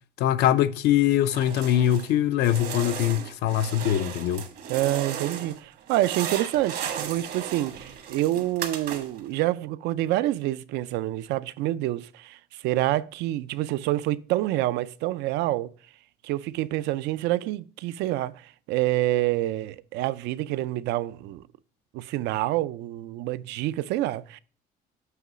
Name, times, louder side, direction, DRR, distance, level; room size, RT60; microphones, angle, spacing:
voice 1, 0.2-4.4, left 11 dB, 80° left, 0.5 m, -23 dB
sound 1, 1.3-2.1 2.4-5.6 5.9-9.3, right 8 dB, 70° right, 1.2 m, -35 dB
voice 2, 4.7-7.8 8.1-15.7 16.2-21.4 21.9-24.4, right 15 dB, 85° right, 0.4 m, -27 dB
7.8 x 3.0 x 6.0 m
cardioid pair, 110°, 17 cm